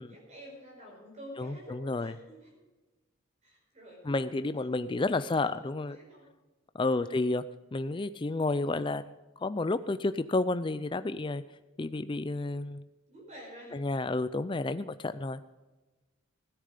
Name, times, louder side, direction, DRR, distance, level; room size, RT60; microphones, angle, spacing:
voice 1, 0.0-2.5 3.4-4.4 4.8-6.3 6.9-7.2 13.1-13.8, equal, 30° right, -1 dB, 5.0 m, -49 dB
voice 2, 1.4-2.1 4.0-6.0 6.7-7.4 7.7-9.1 9.4-11.4 11.8-12.8 13.7-15.4, left 2 dB, 20° left, 12 dB, 0.4 m, -31 dB
16.0 x 10.0 x 5.1 m, 1.1 s
head